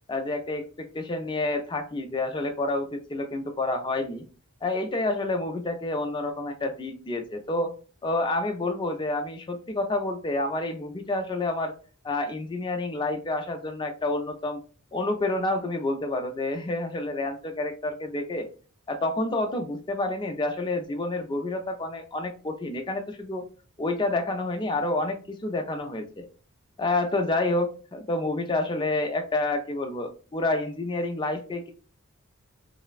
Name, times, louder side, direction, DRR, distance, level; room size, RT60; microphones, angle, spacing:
voice 1, 0.1-4.2 4.6-7.7 8.0-11.7 12.0-14.6 14.9-18.5 18.9-23.4 23.8-26.3 26.8-31.7, left 2 dB, 20° left, 5 dB, 0.3 m, -29 dB
3.2 x 2.0 x 2.3 m, 0.38 s
head